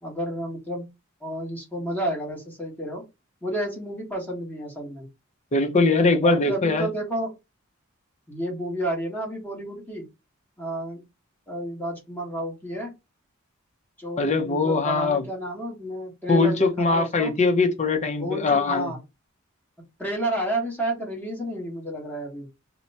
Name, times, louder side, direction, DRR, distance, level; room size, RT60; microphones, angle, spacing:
voice 1, 0.0-0.9 1.2-3.0 3.4-5.1 6.1-7.3 8.3-10.1 10.6-11.0 11.5-12.9 14.0-17.3 18.2-19.0 20.0-22.5, right 1 dB, 10° left, 1.2 m, -31 dB
voice 2, 5.5-6.9 14.2-15.2 16.3-18.9, left 3 dB, 35° left, 0.7 m, -21 dB
2.9 x 2.1 x 3.9 m
head